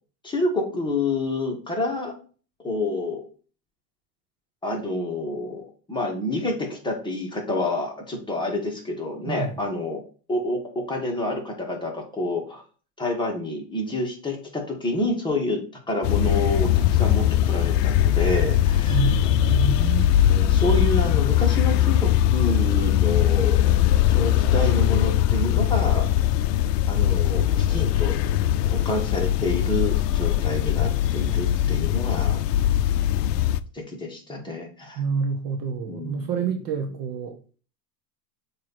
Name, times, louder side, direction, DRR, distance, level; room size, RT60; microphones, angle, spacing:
voice 1, 0.2-2.1 2.6-3.2 4.6-5.6 5.9-10.0 10.3-12.6 13.0-15.6 15.9-19.1 20.2-23.6 24.1-26.1 26.9-28.2 28.6-32.4 33.7-35.0 35.9-36.3, left 1 dB, 10° left, 2.0 m, -28 dB
voice 2, 9.3-9.6 18.9-20.1 35.0-37.4, right 5 dB, 45° right, 1.0 m, -27 dB
sound 1, 16.0-33.6, left 12 dB, 75° left, 0.6 m, -21 dB
7.4 x 3.1 x 4.3 m
hypercardioid pair, 105°, 49 cm